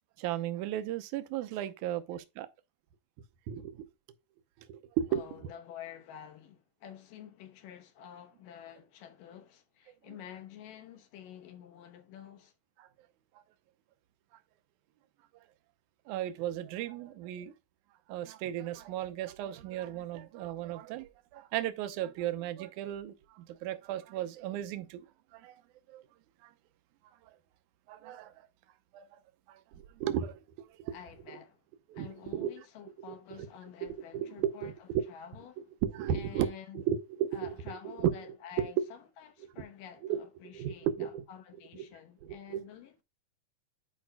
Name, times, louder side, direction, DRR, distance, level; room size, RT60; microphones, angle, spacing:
voice 1, 0.2-2.5 3.5-3.9 4.7-5.3 12.8-12.9 16.1-17.5 18.1-25.1 25.3-25.6 25.9-26.0 26.4-26.5 27.9-28.3 28.9-29.0 29.5-30.9 31.9-32.5 33.0-33.5 33.8-35.0 35.8-37.5 38.0-38.1 38.6-38.7 40.1-40.2 40.5-41.2 41.8-41.9 42.2-42.6, right 10 dB, 75° right, 2.0 m, -35 dB
voice 2, 5.1-12.5 30.9-31.6 31.9-35.7 36.1-36.8 37.3-43.0, left 9 dB, 80° left, 2.7 m, -49 dB
10.5 x 5.0 x 2.2 m
omnidirectional pair, 3.9 m